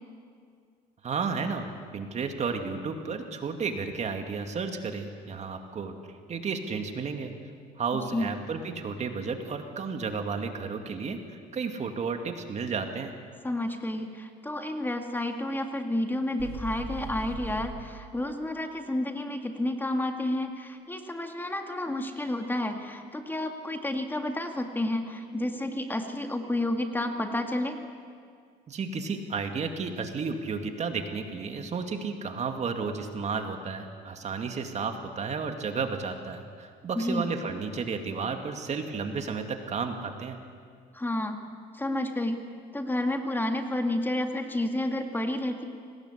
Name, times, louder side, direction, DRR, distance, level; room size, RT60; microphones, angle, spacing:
voice 1, 1.0-1.7 1.9-5.9 6.3-7.3 7.8-11.2 11.5-13.1 28.7-40.4, right 5 dB, 40° right, 5 dB, 2.4 m, -32 dB
voice 2, 13.4-27.8 36.9-37.3 40.9-41.4 41.7-42.4 42.7-45.6, left 1 dB, 10° left, 5 dB, 2.0 m, -30 dB
sound 1, 16.4-17.7, right 4 dB, 60° right, 6.8 m, -38 dB
27.5 x 19.0 x 8.3 m, 2.1 s
cardioid pair, 110°, 17 cm